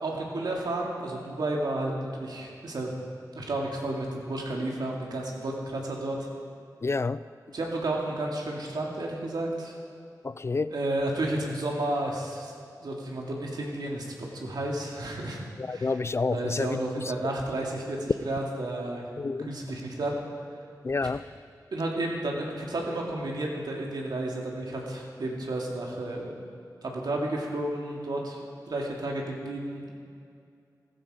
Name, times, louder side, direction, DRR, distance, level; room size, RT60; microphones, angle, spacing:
voice 1, 0.0-3.0 3.3-6.2 7.5-9.8 10.7-12.5 12.8-15.4 15.7-15.9 16.3-19.0 19.5-20.1 21.7-26.3 26.8-28.4 28.7-29.9, right 1 dB, 80° right, 2.5 m, -32 dB
voice 2, 6.8-7.2 10.2-10.7 15.6-17.1 19.2-19.5 20.8-21.2, left 3 dB, 40° left, 0.4 m, -29 dB
15.0 x 14.0 x 5.1 m
wide cardioid pair, 80°, 7 cm